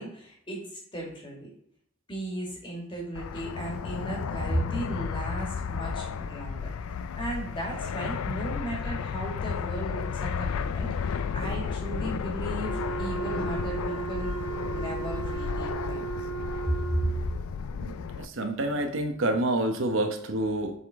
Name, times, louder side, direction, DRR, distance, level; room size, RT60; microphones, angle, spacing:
voice 1, 0.0-1.5 2.1-6.7 7.2-14.3 14.7-16.1 16.7-17.1, right 1 dB, 25° left, -2 dB, 1.9 m, -35 dB
Fixed-wing aircraft airplane, 3.1-18.3, left 6 dB, 90° left, 0.4 m, -33 dB
Wind instrument woodwind instrument, 12.6-17.3, right 7 dB, 70° left, 1.0 m, -35 dB
voice 2, 17.8-20.7, right 1 dB, 65° right, 5 dB, 0.9 m, -28 dB
7.2 x 4.0 x 3.6 m, 0.69 s
head